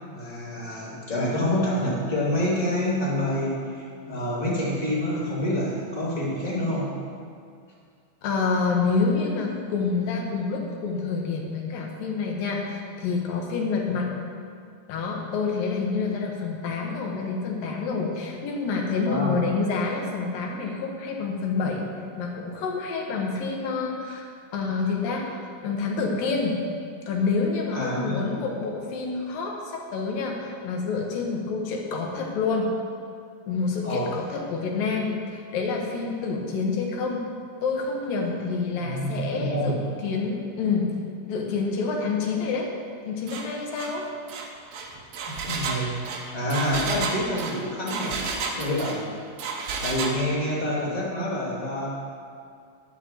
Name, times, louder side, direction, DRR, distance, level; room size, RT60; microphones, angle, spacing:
voice 1, 0.1-6.9 19.0-19.3 27.7-28.3 33.8-34.1 38.8-39.8 45.5-45.9 46.3-48.2 48.6-49.1 49.8-52.0, left 1 dB, 20° left, -6 dB, 1.2 m, -27 dB
voice 2, 8.2-14.1 14.9-21.8 22.2-24.3 24.5-25.4 25.6-26.7 27.1-32.7 33.5-37.3 37.6-39.8 40.0-40.9 41.3-42.7 43.1-44.1, left 4 dB, 70° left, 0 dB, 2.9 m, -27 dB
Engine, 43.3-43.5 43.8-44.0 44.3-49.0 49.4-50.2, right 4 dB, 85° right, 1.5 m, -31 dB
11.5 x 5.8 x 7.5 m, 2.2 s
omnidirectional pair, 4.4 m